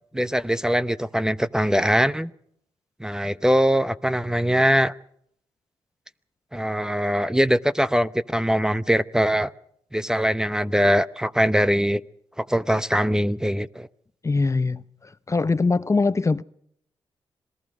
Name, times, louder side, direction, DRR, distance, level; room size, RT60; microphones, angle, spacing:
voice 1, 0.1-2.3 3.0-4.9 6.5-9.5 9.9-12.0 12.4-13.9, equal, 5° right, 0.9 m, -22 dB
voice 2, 14.2-16.4, left 3 dB, 30° left, 0.7 m, -22 dB
26.5 x 19.5 x 5.1 m
cardioid pair, 55°, 10 cm